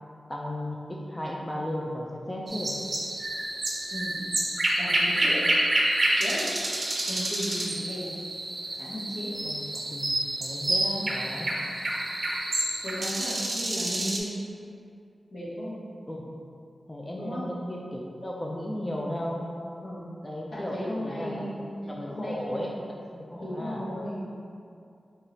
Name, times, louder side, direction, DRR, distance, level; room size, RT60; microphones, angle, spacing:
voice 1, 0.3-2.7 9.4-10.1 10.4-11.6 16.1-16.3 16.9-19.5 20.2-21.4 21.8-23.8, left 1 dB, 15° left, -2 dB, 0.3 m, -35 dB
sound 1, 2.5-14.2, right 1 dB, 45° right, 0.5 m, -28 dB
voice 2, 3.9-4.2 4.8-5.4 6.2-6.5 7.1-8.1 8.8-9.3 11.7-11.9 12.8-14.3 15.3-15.8 17.2-17.4 19.8-20.1 20.5-21.7 22.1-22.8 23.4-24.3, equal, 80° left, -10 dB, 1.3 m, -35 dB
4.7 x 2.9 x 2.8 m, 2.4 s
wide cardioid pair, 100°, 0 cm